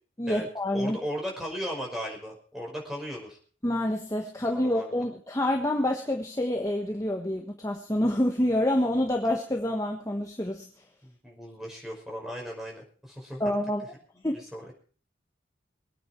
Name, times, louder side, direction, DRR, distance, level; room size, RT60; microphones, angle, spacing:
voice 1, 0.2-1.0 3.6-10.7 13.4-13.8 14.2-14.3, left 1 dB, 15° left, 2 dB, 1.3 m, -27 dB
voice 2, 0.7-3.4 4.5-4.9 11.0-13.6 14.3-14.7, equal, ahead, -1 dB, 5.4 m, -37 dB
24.0 x 9.1 x 4.6 m, 0.41 s
head